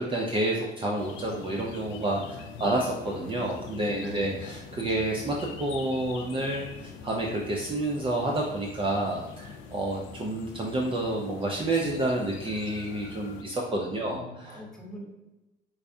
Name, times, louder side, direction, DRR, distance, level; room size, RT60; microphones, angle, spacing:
voice 1, 0.0-14.6, right 1 dB, 25° right, -1 dB, 0.5 m, -29 dB
sound 1, 1.0-13.4, left 5 dB, 75° left, 0.4 m, -44 dB
voice 2, 2.2-2.9 3.9-4.5 13.9-15.0, equal, 5° left, -2 dB, 1.0 m, -43 dB
4.6 x 2.2 x 2.6 m, 1.0 s
cardioid pair, 85°, 20 cm